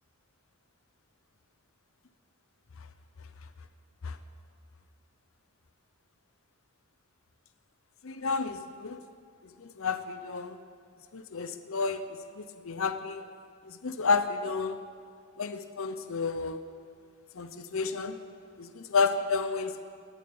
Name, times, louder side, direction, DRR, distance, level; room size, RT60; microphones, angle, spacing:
voice 1, 8.0-9.0 9.8-10.6 11.1-12.0 12.4-13.2 13.7-14.7 15.4-16.6 17.4-18.1 18.6-19.8, left 4 dB, 65° left, 9 dB, 0.7 m, -31 dB
19.5 x 8.1 x 8.6 m, 2.2 s
head